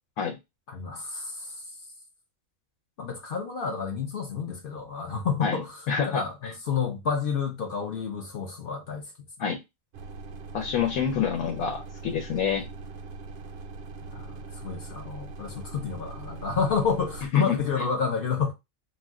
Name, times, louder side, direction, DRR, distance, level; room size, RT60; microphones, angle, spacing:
voice 1, 0.7-1.5 3.0-5.8 6.0-9.0 14.1-18.5, left 6 dB, 60° left, 0.6 m, -29 dB
voice 2, 5.9-6.5 9.4-9.6 10.5-12.7 17.3-17.8, left 7 dB, 85° left, 1.1 m, -28 dB
sound 1, 9.9-17.3, right 3 dB, 65° right, 0.6 m, -41 dB
2.5 x 2.2 x 3.5 m
omnidirectional pair, 1.5 m